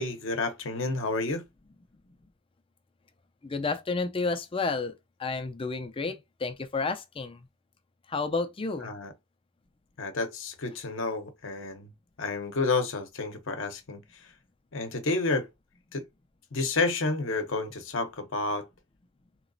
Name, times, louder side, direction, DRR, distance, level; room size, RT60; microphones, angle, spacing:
voice 1, 0.0-1.4 8.8-9.1 10.0-11.9 12.2-14.3 14.7-15.5 15.9-16.0 16.5-18.7, left 3 dB, 60° left, 0.8 m, -30 dB
voice 2, 3.4-4.9 5.2-7.5 8.1-8.9, left 3 dB, 25° left, 0.4 m, -31 dB
3.9 x 3.0 x 2.6 m
head